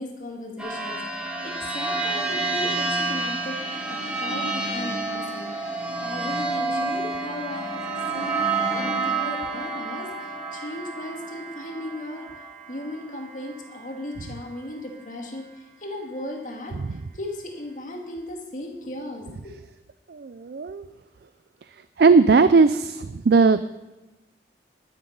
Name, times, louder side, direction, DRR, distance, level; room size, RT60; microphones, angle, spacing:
voice 1, 0.0-3.6 3.9-5.5 6.0-16.8 17.1-19.5, left 1 dB, 45° left, 1 dB, 2.1 m, -36 dB
sound 1, 0.6-13.8, right 3 dB, 5° right, 2.1 m, -29 dB
voice 2, 20.1-20.9 22.0-23.7, right 4 dB, 60° right, 12 dB, 0.4 m, -18 dB
11.5 x 9.7 x 5.3 m, 1.0 s
head